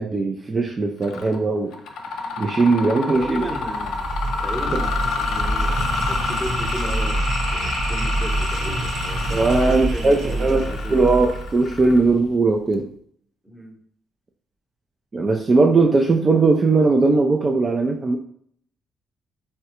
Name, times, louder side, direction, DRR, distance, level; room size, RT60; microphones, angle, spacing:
voice 1, 0.0-1.7 2.4-3.5 9.3-10.7 10.9-12.9 15.1-18.2, right 3 dB, 35° right, 2 dB, 0.3 m, -19 dB
Mechanisms, 1.0-1.4 1.7-12.3, left 4 dB, 80° left, 0.4 m, -29 dB
voice 2, 2.9-4.0 4.4-11.1 13.4-13.8, equal, 5° right, 0 dB, 0.8 m, -35 dB
sound 1, 3.1-12.3, right 1 dB, 70° right, 0.9 m, -26 dB
3.5 x 2.1 x 2.8 m, 0.62 s
cardioid pair, 90°, 0 cm